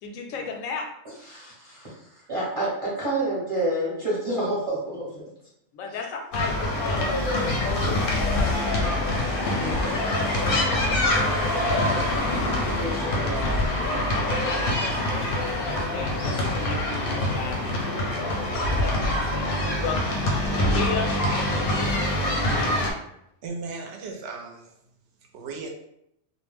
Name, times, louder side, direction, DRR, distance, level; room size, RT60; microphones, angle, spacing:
voice 1, 0.0-0.9 5.7-9.3 10.5-12.3 14.1-17.9 19.6-20.0 20.7-22.8, left 5 dB, 90° left, 3 dB, 1.0 m, -35 dB
voice 2, 1.3-5.2 9.6-9.9 12.7-13.7, right 1 dB, 25° right, -8 dB, 0.9 m, -29 dB
sound 1, 6.3-22.9, left 1 dB, 55° left, 0.6 m, -25 dB
voice 3, 23.4-24.7 25.3-25.8, right 3 dB, 65° right, 2 dB, 0.8 m, -36 dB
2.4 x 2.1 x 3.3 m, 0.76 s
omnidirectional pair, 1.3 m